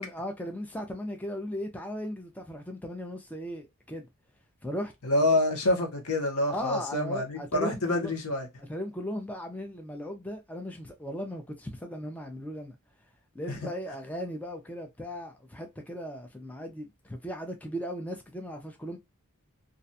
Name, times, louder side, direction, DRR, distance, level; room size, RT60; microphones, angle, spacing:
voice 1, 0.0-4.1 4.6-4.9 5.3-5.4 6.5-8.1 8.6-12.8 13.3-19.0, equal, 5° left, 0.4 m, -37 dB
voice 2, 5.0-8.5 13.5-13.6, left 1 dB, 80° left, 0.8 m, -27 dB
2.4 x 2.2 x 2.6 m
head